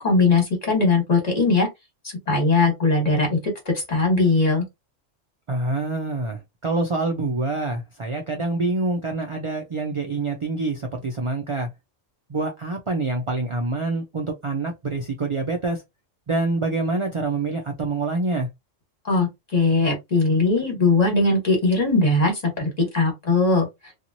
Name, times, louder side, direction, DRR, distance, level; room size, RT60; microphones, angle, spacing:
voice 1, 0.0-1.7 2.3-4.6 19.0-23.7, left 3 dB, 35° left, 1.3 m, -20 dB
voice 2, 5.5-11.7 12.3-15.8 16.3-18.5, right 3 dB, 50° right, 0.3 m, -26 dB
2.9 x 2.4 x 2.6 m
omnidirectional pair, 1.3 m